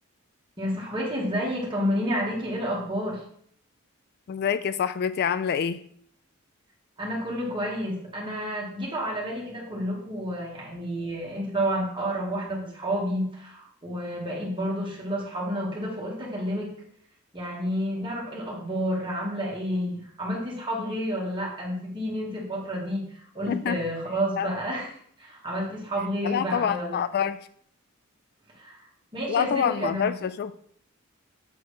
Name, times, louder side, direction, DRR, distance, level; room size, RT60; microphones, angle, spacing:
voice 1, 0.6-3.2 7.0-16.7 17.3-24.9 25.2-27.0 28.5-28.8 29.1-30.1, equal, 25° right, -4 dB, 2.3 m, -30 dB
voice 2, 4.3-5.8 23.5-23.8 24.4-24.5 26.2-27.5 29.3-30.5, left 8 dB, 50° left, 14 dB, 0.3 m, -26 dB
7.8 x 4.1 x 4.7 m, 0.63 s
head